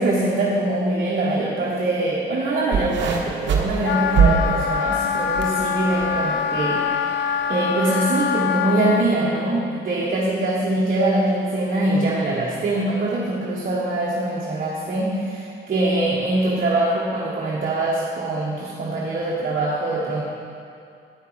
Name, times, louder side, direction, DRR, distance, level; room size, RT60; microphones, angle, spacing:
voice 1, 0.0-7.2 7.5-20.2, right 2 dB, 45° right, -5 dB, 1.4 m, -23 dB
sound 1, 2.7-5.6 5.9-6.4 7.1-7.2, right 6 dB, 60° right, 1.2 m, -22 dB
Wind instrument woodwind instrument, 3.8-9.0, left 7 dB, 60° left, 0.6 m, -24 dB
9.0 x 6.6 x 4.8 m, 2.5 s
supercardioid pair, 70°, 21 cm